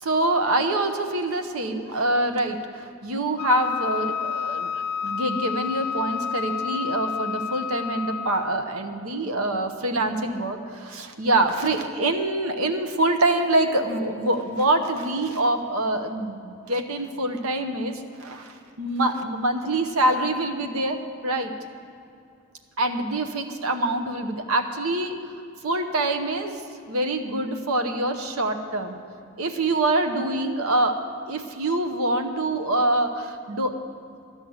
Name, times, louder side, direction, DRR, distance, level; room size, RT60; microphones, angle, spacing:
voice 1, 0.0-21.5 22.8-25.1 25.6-29.0 29.4-31.0 31.3-33.8, right 2 dB, 80° right, 7 dB, 0.9 m, -25 dB
Wind instrument woodwind instrument, 3.4-8.6, left 7 dB, 90° left, 0.4 m, -30 dB
12.5 x 6.4 x 9.5 m, 2.5 s
head